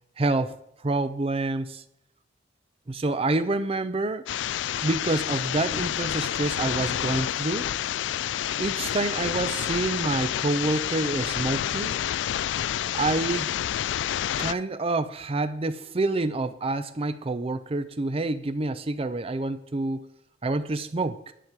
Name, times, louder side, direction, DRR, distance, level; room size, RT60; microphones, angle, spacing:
voice 1, 0.2-0.6 0.8-1.8 2.9-4.2 4.8-7.7 8.6-12.0 12.9-13.5 14.4-20.0 20.4-21.3, right 2 dB, 30° right, 12 dB, 0.5 m, -27 dB
sound 1, 4.3-14.5, left 11 dB, 80° left, 0.3 m, -29 dB
10.0 x 9.2 x 4.7 m, 0.75 s
head